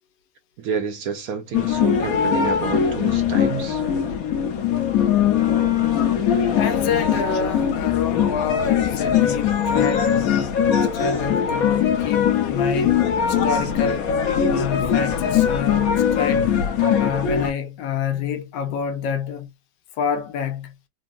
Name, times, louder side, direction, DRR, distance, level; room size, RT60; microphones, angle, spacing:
voice 1, 0.6-3.8, right 7 dB, 65° right, 1.0 m, -29 dB
sound 1, 1.5-17.5, left 8 dB, 65° left, 1.0 m, -21 dB
voice 2, 6.6-10.6 10.9-14.1 14.4-16.5 17.0-19.5 20.0-20.7, left 7 dB, 85° left, 1.3 m, -27 dB
3.6 x 2.0 x 2.4 m
omnidirectional pair, 1.9 m